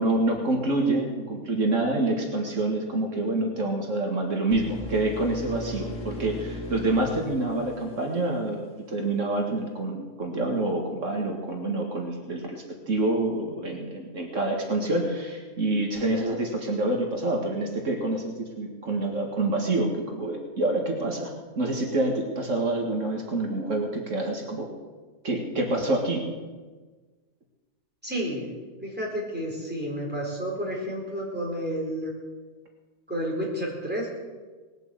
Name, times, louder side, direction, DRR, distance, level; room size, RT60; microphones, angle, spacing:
voice 1, 0.0-24.7 25.2-26.3, right 2 dB, 75° right, 1 dB, 2.3 m, -27 dB
sound 1, 4.5-8.4, left 1 dB, 90° left, 2.1 m, -38 dB
voice 2, 28.0-28.5 28.8-32.1 33.1-34.1, equal, 5° right, -3 dB, 4.5 m, -30 dB
20.0 x 8.0 x 8.0 m, 1.3 s
omnidirectional pair, 1.3 m